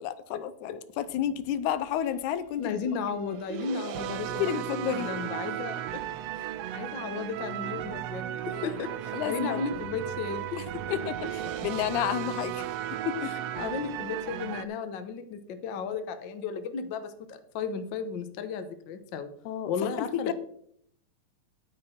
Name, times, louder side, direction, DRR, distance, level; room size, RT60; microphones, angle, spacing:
voice 1, 0.0-2.7 4.4-5.2 8.5-8.8 9.1-9.6 10.9-12.6 13.1-13.3 19.5-19.7 20.3-20.4, left 10 dB, 85° left, 14 dB, 2.2 m, -31 dB
sound 1, 1.1-2.3 3.1-14.7, right 11 dB, 80° right, 1.5 m, -35 dB
voice 2, 2.6-6.0 6.3-10.6 13.2-19.3 19.7-20.3, left 5 dB, 70° left, 9 dB, 1.1 m, -34 dB
9.9 x 9.4 x 4.3 m, 0.67 s
omnidirectional pair, 3.4 m